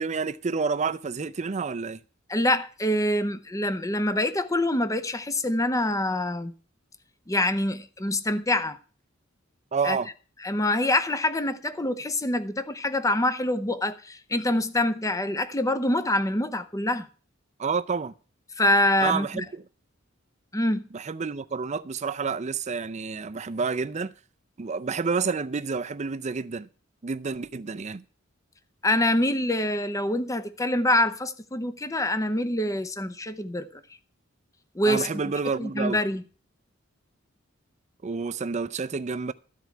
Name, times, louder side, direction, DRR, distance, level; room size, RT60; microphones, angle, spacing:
voice 1, 0.0-2.0 9.7-10.1 17.6-18.1 19.0-19.6 20.9-24.1 24.6-26.7 27.0-28.0 34.9-36.0 38.0-39.3, right 5 dB, 35° right, 0.5 m, -29 dB
voice 2, 2.3-6.5 7.3-8.8 9.8-10.0 10.4-17.1 18.6-19.4 20.5-20.8 28.8-33.8 34.7-35.1 35.6-36.2, left 1 dB, 15° left, 0.7 m, -25 dB
13.0 x 4.7 x 8.2 m
head